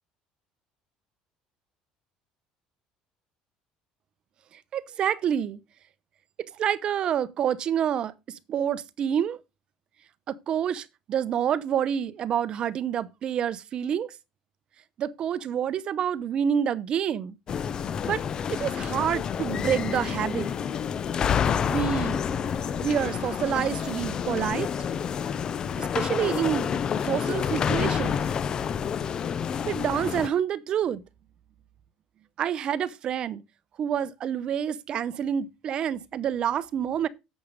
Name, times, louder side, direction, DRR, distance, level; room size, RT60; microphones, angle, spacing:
voice 1, 4.7-5.6 6.6-9.4 10.3-14.1 15.0-17.3 18.0-18.2 18.5-20.5 21.7-22.2 22.8-24.7 25.8-26.7 27.0-28.2 29.7-31.0 32.4-33.4 33.8-37.1, right 9 dB, 40° right, 0.7 m, -28 dB
sound 1, 17.5-30.3, left 7 dB, 30° left, 0.5 m, -28 dB
8.6 x 7.2 x 5.1 m
cardioid pair, 155°, 2 cm